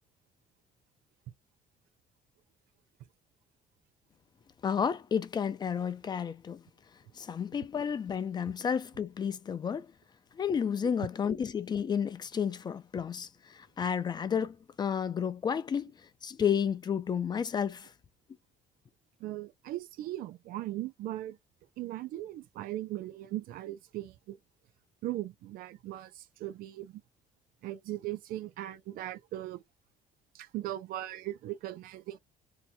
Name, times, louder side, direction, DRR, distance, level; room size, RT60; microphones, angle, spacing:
voice 1, 4.6-6.6 7.2-9.9 10.3-15.9 16.2-17.9, left 7 dB, 30° left, 0.4 m, -31 dB
voice 2, 19.2-21.4 21.8-24.4 25.0-27.0 27.6-29.6 30.3-32.2, right 14 dB, 75° right, 0.5 m, -39 dB
2.8 x 2.2 x 4.1 m
cardioid pair, 135°, 15 cm